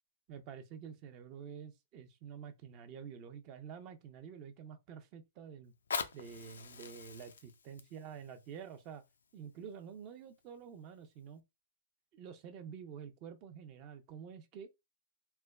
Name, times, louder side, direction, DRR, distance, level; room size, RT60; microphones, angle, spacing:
voice 1, 0.3-5.7 6.1-9.0 9.3-11.4 12.1-14.7, right 7 dB, 40° right, 0.6 m, -49 dB
Fire, 5.6-10.6 11.3-11.4, left 5 dB, 85° left, 0.4 m, -44 dB
3.2 x 2.2 x 2.3 m
hypercardioid pair, 130°, 0 cm